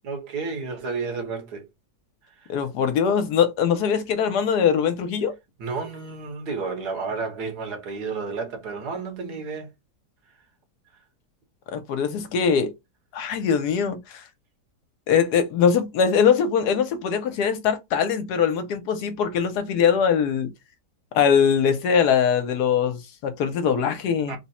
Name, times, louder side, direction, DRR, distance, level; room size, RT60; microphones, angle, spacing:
voice 1, 0.0-1.7 2.4-2.5 5.6-9.7 24.3-24.4, right 4 dB, 70° right, 1.7 m, -31 dB
voice 2, 2.5-5.3 11.7-12.7 13.1-14.2 15.1-20.5 21.1-24.4, left 7 dB, 75° left, 1.2 m, -22 dB
3.6 x 2.0 x 4.2 m
omnidirectional pair, 1.8 m